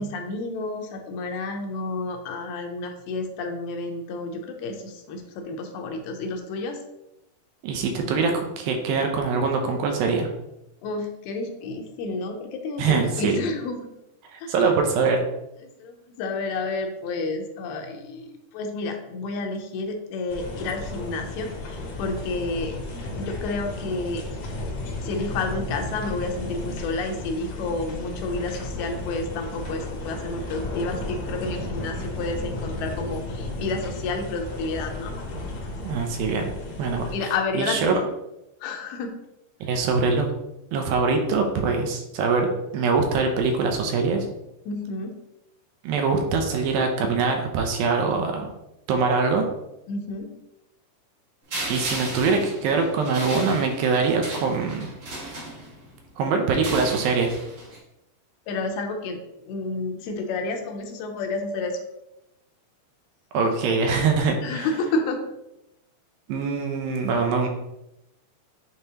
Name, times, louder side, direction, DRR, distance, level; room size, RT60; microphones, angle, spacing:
voice 1, 0.0-6.8 10.8-13.9 14.4-14.5 15.6-22.8 23.1-24.3 25.0-35.2 37.1-38.0 38.6-39.2 44.7-45.2 49.9-50.3 58.5-61.9 64.4-65.3, left 3 dB, 80° left, 4 dB, 2.7 m, -30 dB
voice 2, 7.6-10.3 12.8-13.4 14.3-15.2 35.8-36.5 36.8-37.1 37.5-37.9 39.6-40.3 40.7-44.3 45.8-48.5 48.9-49.5 51.7-54.9 56.2-57.4 63.3-64.7 66.3-67.5, right 4 dB, 80° right, 3 dB, 2.4 m, -23 dB
sound 1, 20.3-37.2, left 2 dB, 65° left, 1.6 m, -34 dB
sound 2, 51.5-56.0 56.5-57.8, right 1 dB, 50° right, 1.8 m, -35 dB
8.9 x 3.7 x 2.8 m, 0.88 s
omnidirectional pair, 4.4 m